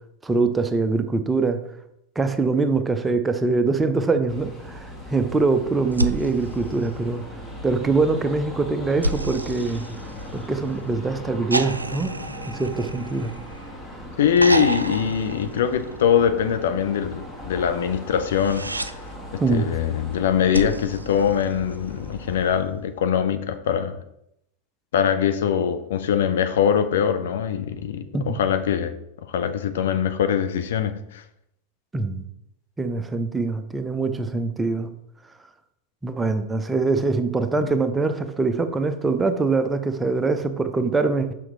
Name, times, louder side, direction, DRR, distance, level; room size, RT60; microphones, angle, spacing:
voice 1, 0.2-1.6 2.2-7.2 7.6-9.9 10.3-12.1 12.5-13.3 19.4-19.7 28.1-28.4 31.9-32.2 32.8-34.9 36.0-41.3, right 3 dB, 10° right, 9 dB, 0.6 m, -23 dB
sound 1, 4.3-22.6, left 1 dB, 15° left, 1.8 m, -38 dB
sound 2, 5.9-7.5 9.0-10.7 11.5-13.8 14.4-16.2 18.2-18.9 20.5-22.0 23.5-23.6, right 2 dB, 80° right, 0.4 m, -30 dB
voice 2, 14.2-18.7 19.3-24.0 24.9-28.9 29.3-31.2, left 8 dB, 60° left, 9 dB, 0.6 m, -22 dB
6.1 x 5.7 x 3.7 m, 0.78 s
figure-of-eight pair, 90°, 0 cm